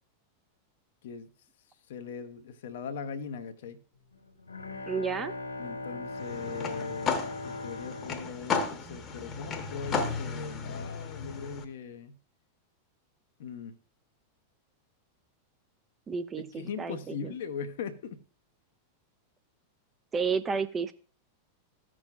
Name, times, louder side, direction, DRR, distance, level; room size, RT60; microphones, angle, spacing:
voice 1, 1.9-3.8 5.6-12.1 13.4-13.8 16.4-18.2, left 6 dB, 55° left, 0.8 m, -40 dB
Bowed string instrument, 4.1-9.6, left 2 dB, 80° left, 1.7 m, -40 dB
voice 2, 4.9-5.3 16.1-17.3 20.1-20.9, right 5 dB, 20° right, 0.6 m, -31 dB
sound 1, 6.2-11.6, left 5 dB, 30° left, 1.0 m, -34 dB
15.0 x 6.2 x 2.4 m
figure-of-eight pair, 90°, 0 cm